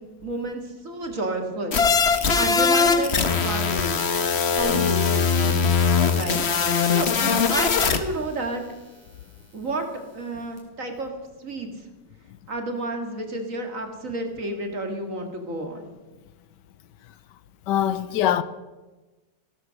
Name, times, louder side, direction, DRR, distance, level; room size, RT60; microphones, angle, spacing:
voice 1, 0.2-1.8 2.3-4.1 4.6-5.5 6.1-8.6 9.5-9.9 10.1-11.1 11.4-11.7 12.5-15.9, right 2 dB, 50° right, 2.4 m, -31 dB
sound 1, 1.7-8.0, left 5 dB, 45° left, 1.2 m, -21 dB
sound 2, 4.6-10.6, equal, 10° right, 4.3 m, -46 dB
voice 2, 17.7-18.4, left 11 dB, 80° left, 1.3 m, -23 dB
16.5 x 13.5 x 6.4 m
omnidirectional pair, 1.9 m